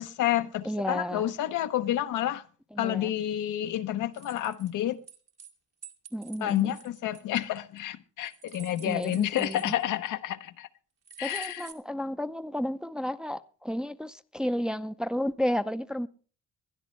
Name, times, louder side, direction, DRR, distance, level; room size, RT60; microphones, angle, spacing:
voice 1, 0.0-2.4 2.8-5.0 6.4-10.7 11.2-11.7, left 12 dB, 80° left, 0.9 m, -29 dB
voice 2, 0.6-1.3 2.7-3.1 6.1-6.8 8.8-9.8 11.2-16.1, equal, 5° right, 0.6 m, -32 dB
sound 1, 4.1-5.5 5.8-7.8 8.2-10.1 11.0-11.7, right 7 dB, 55° right, 1.7 m, -48 dB
21.0 x 12.0 x 3.2 m
cardioid pair, 90°, 30 cm